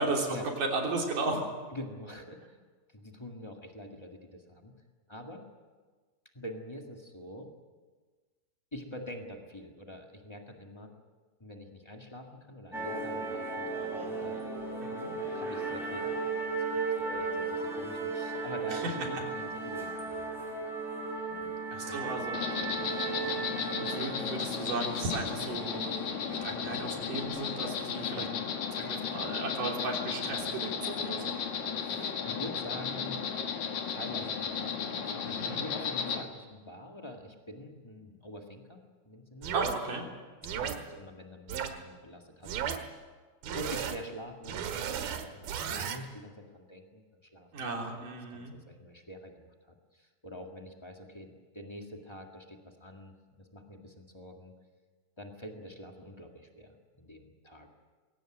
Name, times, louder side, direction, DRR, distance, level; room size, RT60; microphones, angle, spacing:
voice 1, 0.0-1.4 14.8-15.1 18.7-19.2 21.7-22.4 23.8-25.9 26.3-28.3 28.7-31.4 35.2-35.6 39.5-40.0 47.5-48.5, right 3 dB, 60° right, 0 dB, 4.8 m, -35 dB
voice 2, 1.7-2.6 2.9-4.7 5.1-5.4 6.3-7.5 8.7-10.9 11.4-13.7 14.0-14.4 15.3-16.2 16.5-20.7 21.8-23.0 23.2-23.3 31.8-33.2 33.9-35.2 35.5-39.5 40.4-42.8 43.5-47.7 48.3-53.1 53.4-54.5 55.2-57.7, left 1 dB, 35° left, 2 dB, 0.4 m, -46 dB
sound 1, 12.7-27.2, right 4 dB, ahead, 4.8 m, -36 dB
Insect, 22.3-36.2, left 6 dB, 60° left, 2.8 m, -34 dB
sound 2, 39.4-39.8 40.4-40.8 41.5-41.7 42.4-42.8 43.4-44.0 44.4-46.0, right 8 dB, 80° right, 3.3 m, -34 dB
22.0 x 17.5 x 9.1 m, 1.4 s
omnidirectional pair, 4.2 m